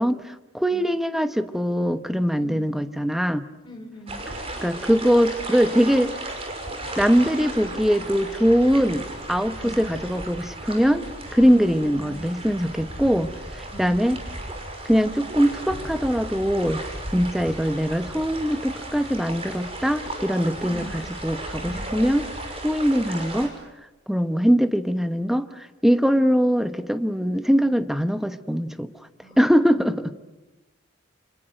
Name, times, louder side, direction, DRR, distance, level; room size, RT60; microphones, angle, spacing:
voice 1, 0.0-3.4 4.6-6.1 7.0-11.0 11.3-13.3 13.8-14.2 14.8-16.8 17.1-22.2 22.6-23.5 24.1-28.9 29.4-30.1, equal, ahead, 10 dB, 1.1 m, -22 dB
voice 2, 2.3-2.7 3.6-4.3 9.6-9.9 11.3-12.6 13.7-14.0 20.6-21.1 21.6-22.0 29.2-30.1, equal, 25° left, 2 dB, 5.3 m, -42 dB
sound 1, 4.1-23.5, right 1 dB, 30° right, 5.6 m, -35 dB
29.5 x 26.5 x 6.5 m, 1.1 s
head